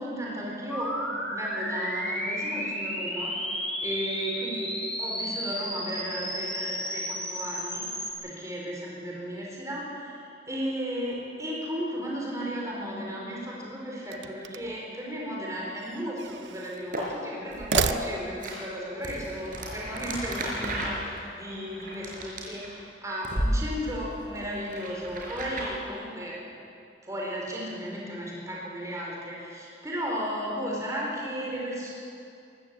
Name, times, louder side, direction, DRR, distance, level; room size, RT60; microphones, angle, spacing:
voice 1, 0.0-4.7 5.0-26.4 27.0-31.9, equal, 20° right, -3 dB, 4.6 m, -35 dB
sound 1, 0.7-8.1, equal, 5° left, 4.2 m, -33 dB
sound 2, 14.0-14.9 15.8-16.8 17.5-18.5, right 6 dB, 85° right, 0.7 m, -32 dB
sound 3, 16.8-17.0 17.5-17.8 18.4-18.5 19.0-22.9 23.2-23.5 23.8-25.7, right 1 dB, 50° right, 5.1 m, -33 dB
22.5 x 14.5 x 8.6 m, 2.6 s
head